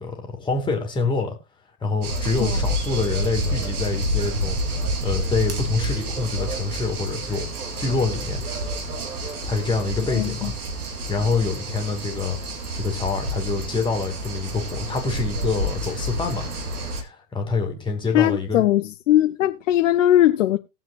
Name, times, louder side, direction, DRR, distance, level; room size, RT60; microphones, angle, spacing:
voice 1, 0.0-1.4 1.8-4.6 5.0-7.5 7.8-8.4 9.5-10.5 11.1-12.4 12.7-16.5 17.0-18.6, left 4 dB, 10° left, 2.4 m, -26 dB
sound 1, 2.0-17.0, right 1 dB, 70° right, 2.3 m, -29 dB
voice 2, 10.1-10.5 18.1-20.6, left 13 dB, 55° left, 0.8 m, -19 dB
19.5 x 7.4 x 2.3 m
figure-of-eight pair, 105°, 46 cm